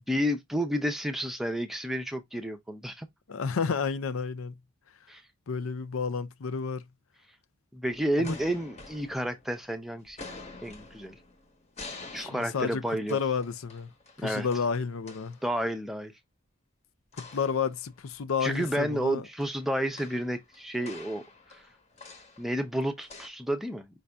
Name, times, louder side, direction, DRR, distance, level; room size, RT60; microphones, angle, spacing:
voice 1, 0.1-3.1 5.1-5.2 7.7-10.2 10.6-11.2 12.1-13.2 14.2-14.5 15.4-16.1 18.4-21.2 22.4-23.9, equal, ahead, 0.6 m, -30 dB
voice 2, 3.3-4.5 5.5-6.8 8.2-8.3 12.2-12.8 13.1-13.9 14.2-15.4 17.1-19.3, left 5 dB, 75° left, 0.5 m, -31 dB
sound 1, 7.9-9.7 10.1-15.5 17.1-18.2 18.5-23.3, left 3 dB, 30° left, 1.0 m, -48 dB
5.2 x 2.7 x 3.4 m
head